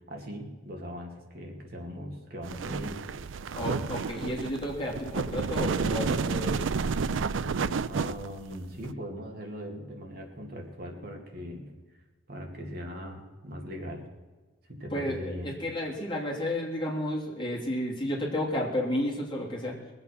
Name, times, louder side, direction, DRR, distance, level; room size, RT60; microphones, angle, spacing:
voice 1, 0.1-3.1 7.8-11.7 12.3-14.0 14.7-15.5, equal, 55° right, 1 dB, 2.3 m, -40 dB
sound 1, 2.4-8.9, right 5 dB, 90° right, 0.5 m, -30 dB
voice 2, 3.5-6.6 14.9-19.7, left 1 dB, 25° left, -3 dB, 3.0 m, -32 dB
21.5 x 8.1 x 6.0 m, 1.3 s
head